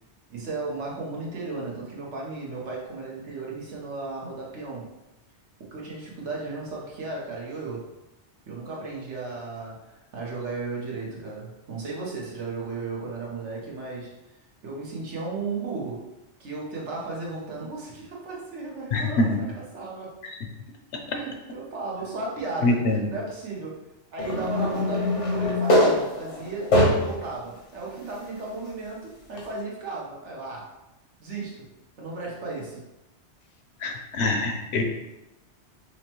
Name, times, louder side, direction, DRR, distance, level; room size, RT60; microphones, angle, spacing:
voice 1, 0.3-4.8 5.7-7.8 8.5-9.8 10.1-14.1 14.6-16.0 16.4-19.3 19.7-20.2 21.1-23.8 24.1-26.7 27.0-30.7 31.2-31.7 32.0-32.8, right 3 dB, 80° right, -3 dB, 1.3 m, -35 dB
voice 2, 18.9-19.4 22.6-23.0 33.8-34.8, left 2 dB, 70° left, 4 dB, 0.9 m, -24 dB
sound 1, 24.2-27.2 27.9-28.0 29.4-29.5, left 1 dB, 85° left, 1.3 m, -22 dB
5.7 x 2.1 x 2.9 m, 0.95 s
omnidirectional pair, 1.2 m